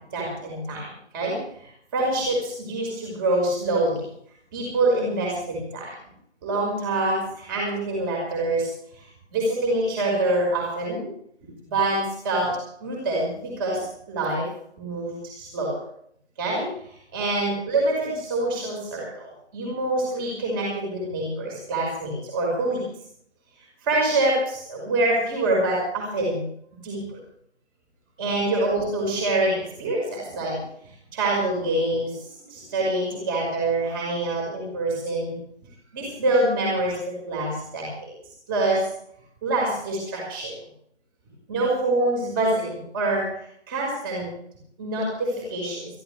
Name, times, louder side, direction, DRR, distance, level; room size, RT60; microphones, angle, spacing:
voice 1, 0.1-0.9 1.1-4.0 4.5-5.9 6.4-8.7 9.3-11.1 11.6-12.5 12.8-14.5 14.8-15.8 16.4-16.7 17.1-22.8 23.8-26.4 26.8-27.2 28.2-30.6 31.1-35.4 35.9-38.1 38.5-38.9 39.4-40.5 41.5-44.3 44.8-45.9, right 2 dB, 20° right, -2 dB, 5.3 m, -25 dB
22.5 x 15.0 x 3.4 m, 0.66 s
figure-of-eight pair, 160°, 34 cm